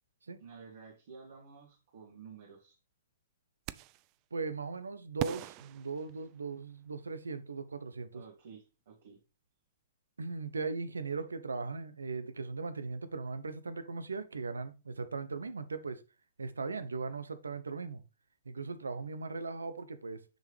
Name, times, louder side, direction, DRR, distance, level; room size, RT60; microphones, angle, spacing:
voice 1, 0.4-2.8 8.1-9.2, right 5 dB, 60° right, 2.3 m, -52 dB
sound 1, 3.7-4.1 5.2-6.7, right 16 dB, 35° right, 0.3 m, -40 dB
voice 2, 4.3-8.2 10.2-16.0 16.4-18.0 18.4-20.2, right 4 dB, 85° right, 0.8 m, -38 dB
6.3 x 5.3 x 3.3 m
hypercardioid pair, 120°, 0 cm